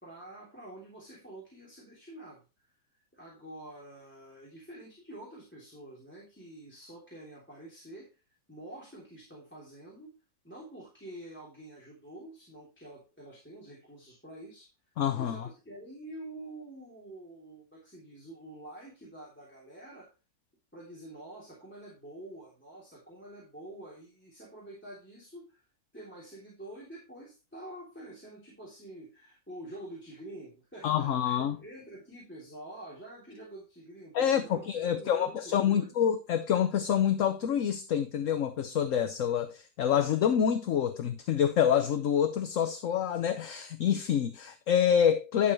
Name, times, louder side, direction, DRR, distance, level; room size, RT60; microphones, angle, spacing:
voice 1, 0.0-2.7 3.1-8.2 8.5-10.1 10.4-14.7 15.1-20.1 20.7-25.7 25.9-34.7 34.9-35.9, right 1 dB, 5° left, 3.2 m, -47 dB
voice 2, 15.0-15.4 30.8-31.6 34.1-45.5, left 8 dB, 60° left, 1.1 m, -27 dB
11.5 x 7.0 x 3.2 m
omnidirectional pair, 1.6 m